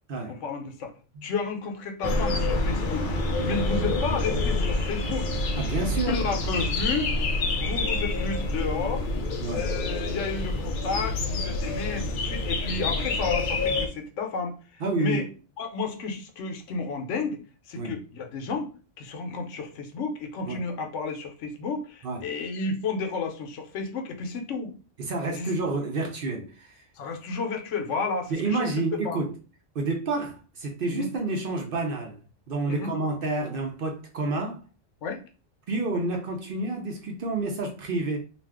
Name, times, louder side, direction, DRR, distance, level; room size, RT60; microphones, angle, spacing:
voice 1, 0.3-0.9 1.2-3.1 3.4-5.3 6.0-7.1 7.6-9.1 9.5-15.3 15.6-17.4 17.6-18.7 19.0-24.7 25.3-25.5 27.0-28.7 29.0-29.2 30.9-31.1 32.7-32.9 35.0-35.2, left 4 dB, 80° left, 1.0 m, -32 dB
sound 1, 2.0-13.9, left 2 dB, 55° left, 0.6 m, -27 dB
voice 2, 5.6-6.2 9.4-9.7 14.8-15.2 17.8-17.9 20.5-20.6 22.0-22.2 25.0-26.8 28.3-29.3 29.7-32.2 32.5-34.6 35.7-38.2, right 3 dB, 55° right, 0.7 m, -29 dB
2.5 x 2.3 x 3.4 m
omnidirectional pair, 1.2 m